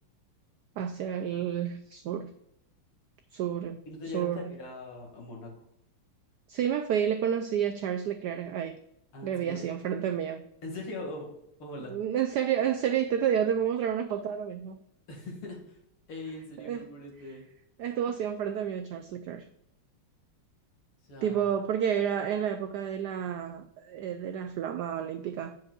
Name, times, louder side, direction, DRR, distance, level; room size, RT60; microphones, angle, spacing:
voice 1, 0.8-2.4 3.3-3.8 4.1-4.5 6.5-8.8 9.2-10.5 11.9-14.8 16.6-16.8 17.8-19.5 21.2-25.6, right 9 dB, 85° right, 7 dB, 0.9 m, -30 dB
voice 2, 3.9-5.5 9.1-9.6 10.6-11.3 11.6-11.9 15.1-15.8 16.1-17.4 21.0-21.4, left 2 dB, 80° left, 0 dB, 3.0 m, -41 dB
7.9 x 7.2 x 2.4 m, 0.77 s
omnidirectional pair, 2.3 m